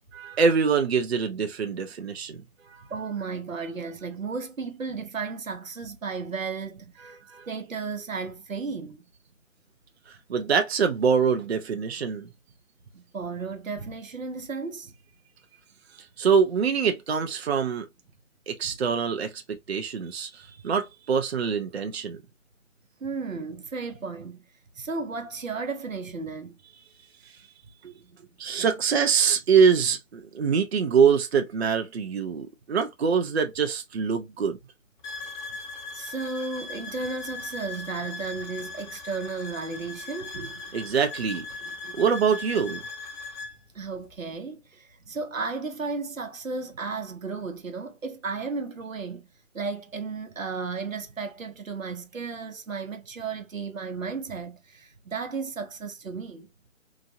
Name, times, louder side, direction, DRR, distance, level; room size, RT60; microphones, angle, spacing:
voice 1, 0.1-2.4 2.7-2.8 7.3-7.5 10.3-12.3 16.2-17.9 18.5-22.2 27.8-27.9 28.4-34.6 40.3-41.4 41.9-42.8, right 6 dB, 55° right, 0.5 m, -24 dB
voice 2, 2.9-7.2 7.5-9.0 12.9-14.9 23.0-24.5 24.7-26.6 35.5-35.6 35.9-40.4 43.7-49.2 49.5-56.5, right 4 dB, 90° right, 0.8 m, -34 dB
sound 1, 35.0-43.6, left 3 dB, 35° left, 1.3 m, -39 dB
2.9 x 2.6 x 2.5 m
figure-of-eight pair, 150°, 39 cm